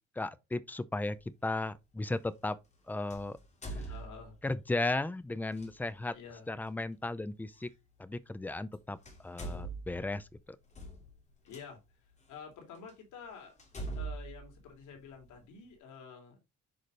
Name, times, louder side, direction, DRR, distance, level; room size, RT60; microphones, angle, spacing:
voice 1, 0.2-1.2 1.4-2.6 2.9-3.4 3.7-3.8 4.4-6.1 6.5-7.7 8.0-9.0 9.2-10.3, left 2 dB, 5° left, 0.5 m, -35 dB
sound 1, 1.0-1.2 3.1-4.6 5.5-5.7 7.6-7.7 8.6-8.7 9.0-11.6 12.3-12.4 12.9-13.0 13.6-15.4, right 2 dB, 25° left, 2.5 m, -42 dB
voice 2, 3.9-4.4 6.1-6.6 11.4-13.5 14.0-16.4, left 6 dB, 85° left, 3.5 m, -49 dB
8.6 x 5.0 x 3.9 m
cardioid pair, 175°, 29 cm